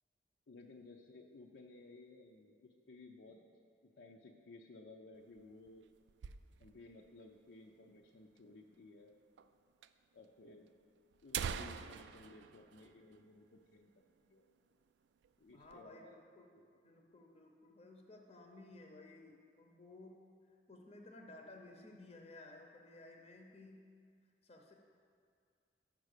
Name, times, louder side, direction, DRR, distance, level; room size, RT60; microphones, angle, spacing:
voice 1, 0.5-3.4 3.8-5.8 6.6-9.2 10.1-10.7 11.2-14.5 15.4-16.2 16.6-16.7, left 2 dB, 75° left, 0 dB, 0.6 m, -57 dB
sound 1, 5.1-7.0 7.3-7.4 7.6-7.7 8.4-8.5 9.4-9.5 9.8-9.9 10.7-10.8 11.1-13.7 14.0-14.2 14.6-14.8 15.2-15.8, right 7 dB, 80° right, 0.3 m, -45 dB
voice 2, 15.5-16.5 16.8-20.2 20.7-23.9 24.4-24.7, left 2 dB, 35° left, 2 dB, 0.7 m, -56 dB
7.2 x 6.1 x 6.6 m, 2.3 s
head